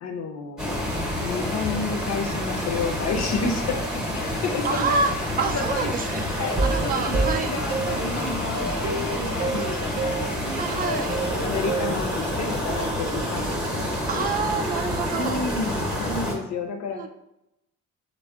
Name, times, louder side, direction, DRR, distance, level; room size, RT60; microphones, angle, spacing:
voice 1, 0.0-5.0 5.5-5.9 6.3-10.3 10.7-14.3 15.1-17.1, left 4 dB, 65° left, 5 dB, 0.5 m, -31 dB
sound 1, 0.6-16.3, equal, ahead, 0.7 m, -28 dB
voice 2, 4.6-5.1 5.4-6.3 6.6-7.5 10.6-11.2 14.1-15.4 16.9-17.1, right 4 dB, 30° right, 5 dB, 0.4 m, -27 dB
sound 2, 6.4-15.9, right 3 dB, 65° right, 0.7 m, -31 dB
3.5 x 2.1 x 2.3 m, 0.86 s
cardioid pair, 90°, 30 cm